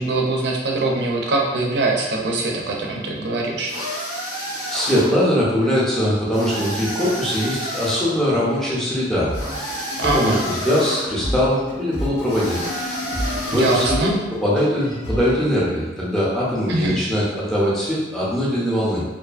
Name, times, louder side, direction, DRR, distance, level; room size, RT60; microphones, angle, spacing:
voice 1, 0.0-3.7 10.0-10.4 13.5-14.1 16.7-17.0, right 2 dB, 60° right, 0 dB, 0.4 m, -22 dB
sound 1, 3.7-5.2 6.3-8.1 9.3-11.1 12.3-14.1, equal, 65° left, 0.9 m, -30 dB
voice 2, 4.7-9.4 10.1-12.7 13.5-19.0, equal, 5° left, -8 dB, 0.5 m, -21 dB
sound 2, 8.1-14.1, left 2 dB, 85° left, 0.4 m, -36 dB
sound 3, 9.3-15.4, equal, 45° left, 0.7 m, -29 dB
2.4 x 2.4 x 2.3 m, 1.2 s
head